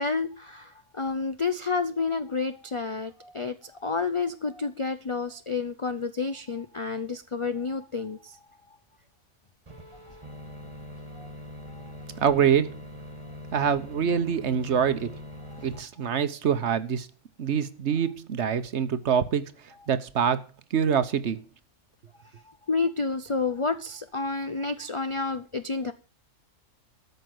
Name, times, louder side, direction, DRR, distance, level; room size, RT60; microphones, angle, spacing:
voice 1, 0.0-8.4 10.4-10.6 11.1-11.3 11.7-11.9 15.5-15.6 22.7-25.9, left 4 dB, 50° left, 0.3 m, -30 dB
sound 1, 9.7-15.8, equal, 20° right, 1.5 m, -42 dB
voice 2, 12.2-12.7 13.5-15.1 15.6-17.1 17.4-19.5 19.9-20.4 20.7-21.4, right 7 dB, 55° right, 1.1 m, -25 dB
13.5 x 5.7 x 7.6 m
omnidirectional pair, 1.5 m